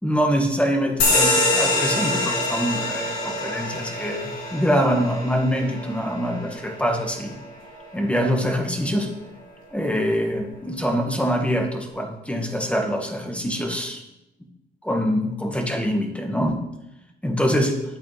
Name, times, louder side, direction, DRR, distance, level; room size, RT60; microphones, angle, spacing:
voice 1, 0.0-7.4 7.9-9.1 9.7-14.0 14.8-16.6 17.2-17.8, equal, 5° left, 2 dB, 1.8 m, -24 dB
sound 1, 1.0-8.1, left 2 dB, 75° left, 2.7 m, -25 dB
11.5 x 8.3 x 3.5 m, 0.90 s
cardioid pair, 90°, 20 cm